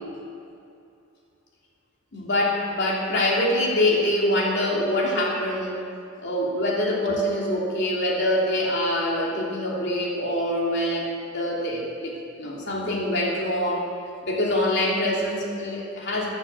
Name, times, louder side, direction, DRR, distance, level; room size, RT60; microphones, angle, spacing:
voice 1, 2.1-5.8 6.2-11.1 11.3-13.9 14.2-16.3, left 1 dB, 55° left, -3 dB, 3.0 m, -24 dB
15.0 x 9.6 x 7.3 m, 2.5 s
head